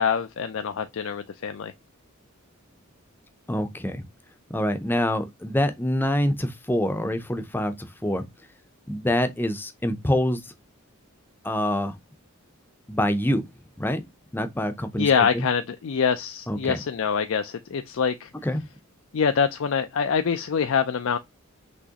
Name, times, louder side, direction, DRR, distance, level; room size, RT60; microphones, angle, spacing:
voice 1, 0.0-1.7 15.0-18.3 19.1-21.2, left 6 dB, 65° left, 0.4 m, -25 dB
voice 2, 3.5-4.0 4.5-8.2 8.9-10.5 11.4-12.0 12.9-13.4 13.8-14.0 14.3-15.5 16.5-16.8 18.4-18.6, left 1 dB, 10° left, 0.6 m, -26 dB
6.1 x 3.0 x 2.8 m
head